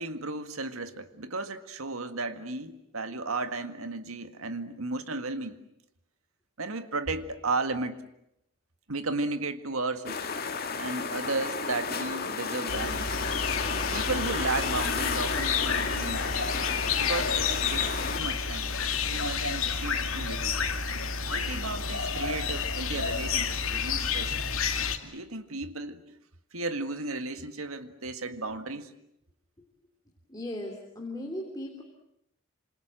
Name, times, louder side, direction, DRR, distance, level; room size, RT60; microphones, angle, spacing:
voice 1, 0.0-5.6 6.6-8.0 8.9-10.3 10.8-13.1 13.9-16.3 16.9-18.7 19.1-20.6 21.3-24.4 25.0-26.0 26.5-28.9, right 3 dB, 85° right, 1.9 m, -34 dB
sound 1, 10.1-18.2, left 5 dB, 45° left, 2.2 m, -33 dB
sound 2, 12.7-25.0, left 5 dB, 80° left, 2.3 m, -30 dB
voice 2, 30.3-31.8, left 1 dB, 20° left, 3.2 m, -37 dB
28.0 x 27.0 x 7.7 m
head